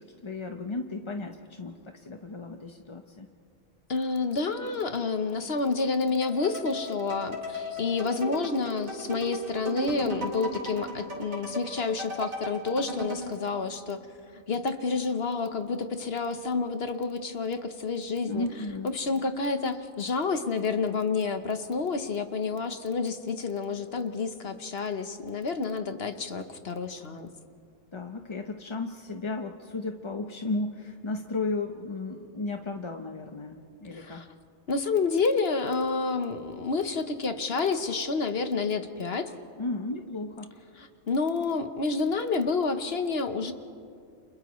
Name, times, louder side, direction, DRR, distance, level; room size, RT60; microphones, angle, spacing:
voice 1, 0.0-3.3 18.3-18.9 27.9-34.2 39.6-40.5, left 3 dB, 30° left, 4 dB, 0.6 m, -34 dB
voice 2, 3.9-14.1 14.5-18.5 18.9-27.3 33.9-34.3 34.7-39.3 40.8-43.5, left 4 dB, 50° left, 8 dB, 1.1 m, -29 dB
sound 1, 6.2-13.3, equal, 75° right, 3.3 m, -36 dB
29.5 x 28.5 x 3.1 m, 2.3 s
omnidirectional pair, 1.4 m